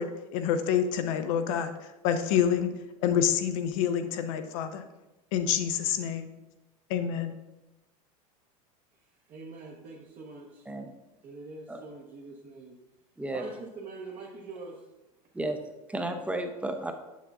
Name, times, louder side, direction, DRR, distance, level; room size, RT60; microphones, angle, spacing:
voice 1, 0.0-2.7 3.0-4.8 5.3-6.3 6.9-7.3, left 8 dB, 65° left, 9 dB, 0.7 m, -27 dB
voice 2, 9.3-10.7 11.2-12.7 13.3-14.8, right 3 dB, 35° right, -2 dB, 0.9 m, -44 dB
voice 3, 15.9-16.9, right 1 dB, 5° right, 6 dB, 0.6 m, -32 dB
6.8 x 6.1 x 2.4 m, 1.0 s
hypercardioid pair, 95°, 19 cm